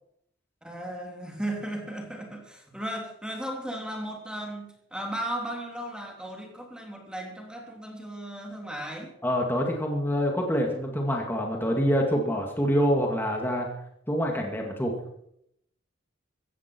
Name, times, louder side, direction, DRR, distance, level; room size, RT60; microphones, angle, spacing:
voice 1, 0.6-9.1, right 1 dB, 5° right, 1 dB, 3.2 m, -36 dB
voice 2, 9.2-13.7 14.1-14.9, equal, 10° left, 0 dB, 2.3 m, -26 dB
16.0 x 15.5 x 4.6 m, 0.75 s
head